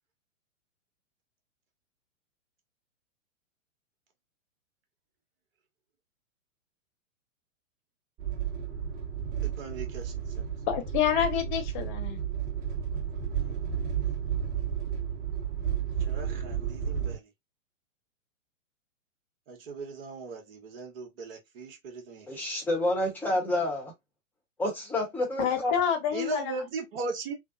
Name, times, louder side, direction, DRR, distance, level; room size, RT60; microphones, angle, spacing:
sound 1, 8.2-17.2, right 8 dB, 20° right, 1.2 m, -32 dB
voice 1, 9.4-10.5 13.4-13.5 16.0-17.3 19.5-22.3 26.1-27.3, right 3 dB, 45° right, 1.2 m, -38 dB
voice 2, 10.7-12.2 25.4-26.5, left 9 dB, 35° left, 0.9 m, -28 dB
voice 3, 22.3-23.9 24.6-25.7, left 1 dB, 5° left, 0.9 m, -29 dB
3.3 x 2.1 x 2.5 m
figure-of-eight pair, 115°, 39 cm